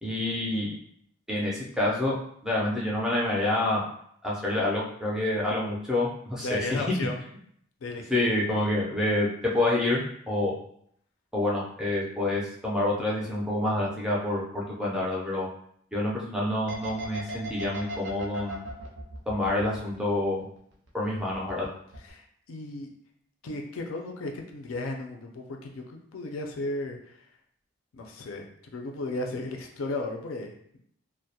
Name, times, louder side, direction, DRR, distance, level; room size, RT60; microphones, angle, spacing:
voice 1, 0.0-0.7 1.3-2.1 2.4-3.8 4.2-6.8 8.1-10.6 11.3-15.5 15.9-18.6 19.3-20.5 20.9-21.7, left 1 dB, 5° right, -5 dB, 0.4 m, -27 dB
voice 2, 6.4-7.2 7.8-8.3 22.0-22.9 23.4-27.0 27.9-28.5 28.7-30.8, left 2 dB, 80° left, 2 dB, 0.4 m, -35 dB
sound 1, 16.7-20.4 20.7-21.7 21.9-22.1, right 2 dB, 60° right, 0.5 m, -37 dB
2.2 x 2.0 x 2.7 m, 0.68 s
head